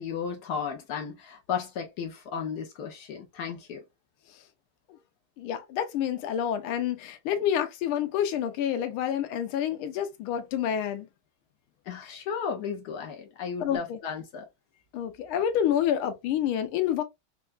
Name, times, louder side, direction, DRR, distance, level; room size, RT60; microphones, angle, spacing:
voice 1, 0.0-3.8 11.8-14.5, left 6 dB, 70° left, 0.9 m, -34 dB
voice 2, 5.4-11.1 12.0-12.2 13.6-14.0 14.9-17.0, left 9 dB, 85° left, 1.5 m, -28 dB
4.4 x 2.2 x 2.4 m
omnidirectional pair, 2.3 m